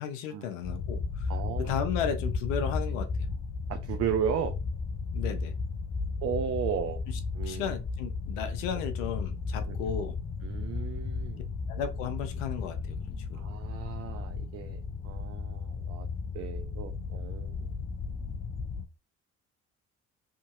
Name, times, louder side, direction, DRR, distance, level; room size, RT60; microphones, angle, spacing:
voice 1, 0.0-1.3 1.6-3.3 5.1-5.5 7.1-10.2 11.7-13.5, left 8 dB, 70° left, 0.7 m, -35 dB
sound 1, 0.6-18.9, left 4 dB, 25° left, 0.4 m, -34 dB
voice 2, 1.3-1.9 3.7-4.6 6.2-7.0 7.3-7.7 9.7-9.9 10.4-11.4 13.3-16.1 16.3-17.7, right 8 dB, 40° right, 0.4 m, -35 dB
2.8 x 2.6 x 2.5 m
figure-of-eight pair, 50°, 39 cm